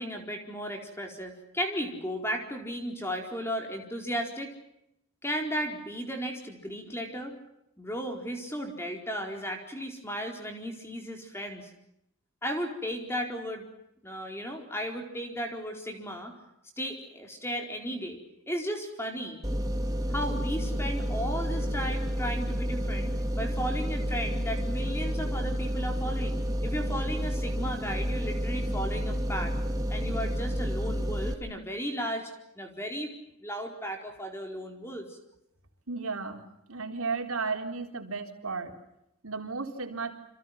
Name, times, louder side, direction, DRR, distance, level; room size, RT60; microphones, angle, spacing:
voice 1, 0.0-4.6 5.2-7.4 7.8-11.7 12.4-13.7 14.0-16.3 16.8-18.2 18.5-19.4 20.1-29.6 29.9-33.1 33.4-35.2, equal, 10° left, 3 dB, 4.4 m, -35 dB
sound 1, 19.4-31.3, equal, 15° right, 2.4 m, -30 dB
voice 2, 35.9-38.8 39.2-40.2, right 4 dB, 80° right, 3 dB, 4.1 m, -34 dB
29.0 x 27.0 x 5.9 m, 0.81 s
head